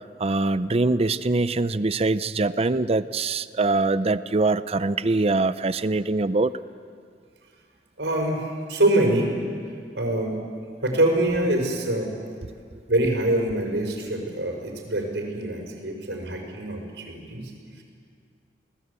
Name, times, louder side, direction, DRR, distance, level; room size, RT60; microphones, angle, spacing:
voice 1, 0.2-6.5, right 3 dB, 35° right, 14 dB, 0.6 m, -23 dB
voice 2, 8.0-9.3 9.9-10.4 10.8-12.1 12.9-17.4, right 1 dB, 85° right, 2 dB, 5.2 m, -24 dB
29.0 x 19.0 x 8.3 m, 2.1 s
head